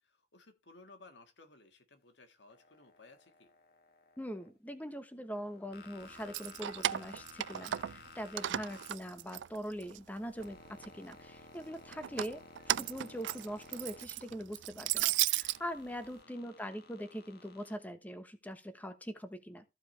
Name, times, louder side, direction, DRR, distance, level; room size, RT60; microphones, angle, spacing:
voice 1, 0.0-3.5 16.2-16.5, left 3 dB, 75° left, 1.8 m, -59 dB
sound 1, 2.5-4.5 5.3-9.6 9.9-14.5 15.4-17.8, left 3 dB, 60° left, 1.4 m, -56 dB
voice 2, 4.2-19.6, equal, 10° left, 1.0 m, -42 dB
Keys jangling, 6.2-8.1 8.4-10.0 10.4-11.1 11.9-15.6, right 13 dB, 80° right, 0.4 m, -35 dB
14.5 x 5.0 x 3.3 m
head